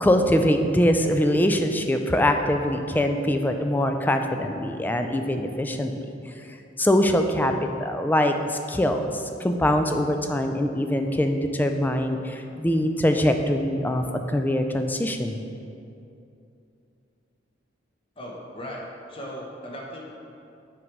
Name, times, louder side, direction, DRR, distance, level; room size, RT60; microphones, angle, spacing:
voice 1, 0.0-5.9 6.8-15.4, left 1 dB, 10° left, 6 dB, 0.3 m, -23 dB
voice 2, 18.2-20.1, equal, 30° left, -2 dB, 0.9 m, -37 dB
6.1 x 5.2 x 4.6 m, 2.7 s
head